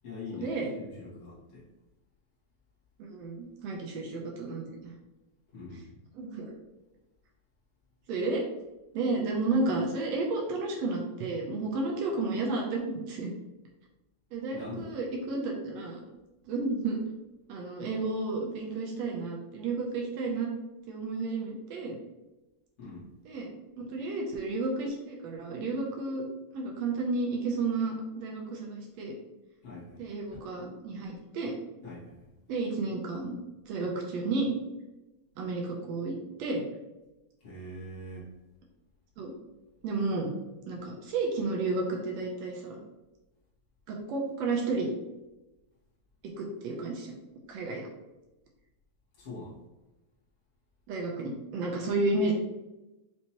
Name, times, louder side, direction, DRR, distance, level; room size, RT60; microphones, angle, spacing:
voice 1, 0.0-1.7 5.5-6.0 14.5-14.9 22.8-23.1 29.6-30.4 31.8-32.3 37.4-38.3 49.1-49.6, left 2 dB, 35° left, -8 dB, 1.2 m, -43 dB
voice 2, 3.1-4.9 6.1-6.5 8.1-8.4 8.9-13.3 14.3-16.0 16.4-17.0 17.5-20.5 20.9-22.0 23.2-26.2 26.5-29.1 30.0-31.6 32.5-33.4 33.7-34.5 35.4-36.6 39.2-39.3 39.8-40.3 40.7-42.8 43.9-44.9 46.4-47.1 47.5-47.9 50.9-52.3, right 3 dB, 75° right, -1 dB, 1.6 m, -32 dB
5.4 x 2.9 x 2.9 m, 1.0 s
omnidirectional pair, 3.6 m